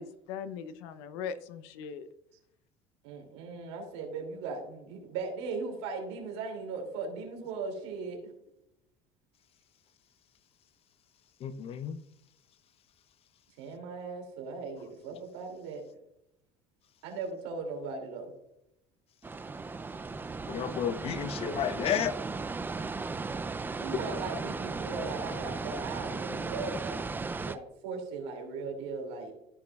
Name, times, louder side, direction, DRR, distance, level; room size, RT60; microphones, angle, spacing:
voice 1, 0.0-2.1, left 7 dB, 80° left, 0.8 m, -40 dB
voice 2, 3.0-8.2 13.6-15.8 17.0-18.3 23.8-27.0 27.4-29.3, right 4 dB, 85° right, 2.8 m, -38 dB
voice 3, 11.4-12.0 20.5-22.1, left 9 dB, 45° left, 0.7 m, -31 dB
sound 1, 19.2-27.6, right 4 dB, 15° right, 0.4 m, -36 dB
14.5 x 5.3 x 2.4 m
supercardioid pair, 105°, 14 cm